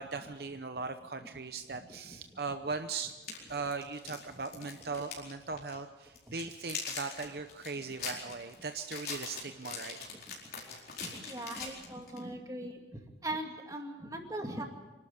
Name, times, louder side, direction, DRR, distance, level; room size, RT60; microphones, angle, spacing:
voice 1, 0.0-3.1 3.5-10.0, right 4 dB, 60° right, 8 dB, 0.8 m, -39 dB
sound 1, 2.2-2.3 3.1-5.3 5.6-5.7 6.1-12.2, left 5 dB, 55° left, 4.6 m, -42 dB
voice 2, 11.0-12.8 13.2-14.6, right 1 dB, 20° right, 3 dB, 2.3 m, -39 dB
26.0 x 12.0 x 8.6 m, 1.1 s
head